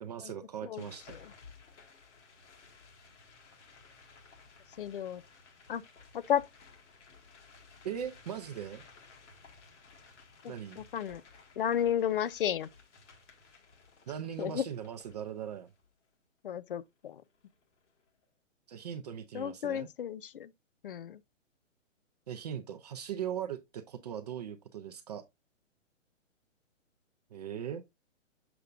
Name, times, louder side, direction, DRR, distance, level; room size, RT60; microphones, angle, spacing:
voice 1, 0.0-1.2 7.8-8.8 10.5-10.8 14.1-15.7 18.7-19.9 22.3-25.2 27.3-27.8, right 9 dB, 35° right, 0.5 m, -39 dB
voice 2, 0.6-1.3 4.8-5.2 5.7-5.8 6.1-6.4 10.4-11.2 11.6-12.7 14.4-14.6 16.4-17.2 19.3-20.5 20.8-21.2, left 9 dB, 45° left, 0.4 m, -33 dB
sound 1, 0.8-15.9 16.5-16.6 16.8-18.2, left 4 dB, 60° left, 1.8 m, -57 dB
6.8 x 6.5 x 2.4 m
figure-of-eight pair, 125°, 39 cm